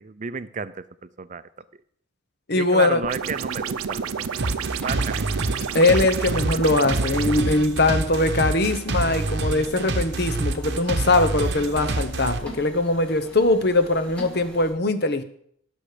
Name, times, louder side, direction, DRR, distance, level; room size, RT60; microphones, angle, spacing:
voice 1, 0.0-1.5 2.6-4.3 4.5-5.3, right 5 dB, 35° right, 14 dB, 0.5 m, -32 dB
voice 2, 2.5-3.0 5.7-15.2, left 2 dB, 50° left, 11 dB, 1.0 m, -21 dB
sound 1, 3.0-7.4, right 6 dB, 85° right, 0.6 m, -30 dB
sound 2, 3.2-14.7, equal, 5° left, 2.3 m, -45 dB
sound 3, 4.4-12.4, right 2 dB, 55° right, 1.0 m, -27 dB
18.5 x 6.3 x 5.0 m, 0.65 s
head